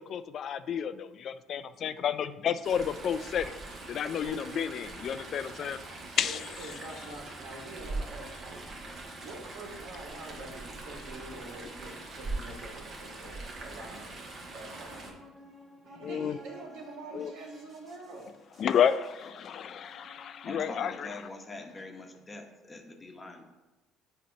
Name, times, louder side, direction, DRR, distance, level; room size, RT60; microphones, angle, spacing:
voice 1, 0.0-3.5 3.9-5.8 6.2-6.4 16.0-16.4 17.1-17.3 18.6-21.1, left 8 dB, 55° left, 13 dB, 0.3 m, -31 dB
Chatter / Stream, 2.6-15.1, right 2 dB, 45° right, 1.4 m, -42 dB
voice 2, 4.1-4.4 5.7-8.7 9.2-14.1 14.5-15.2 15.8-18.3, right 2 dB, 80° right, 0 dB, 1.5 m, -46 dB
sound 1, 14.7-20.9, equal, 25° right, 2.1 m, -56 dB
voice 3, 20.4-23.4, left 2 dB, 25° left, 4 dB, 0.9 m, -43 dB
7.4 x 2.9 x 5.1 m, 1.1 s
supercardioid pair, 90°, 0 cm